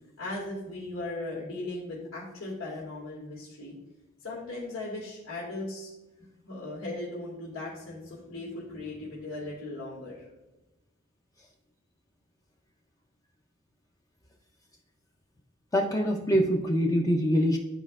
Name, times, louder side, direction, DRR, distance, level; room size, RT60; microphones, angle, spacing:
voice 1, 0.2-3.7 4.2-5.9 6.4-10.3, left 2 dB, 85° left, -7 dB, 1.9 m, -38 dB
voice 2, 15.7-17.6, equal, 15° left, 1 dB, 0.5 m, -24 dB
11.5 x 4.4 x 2.4 m, 1.0 s
head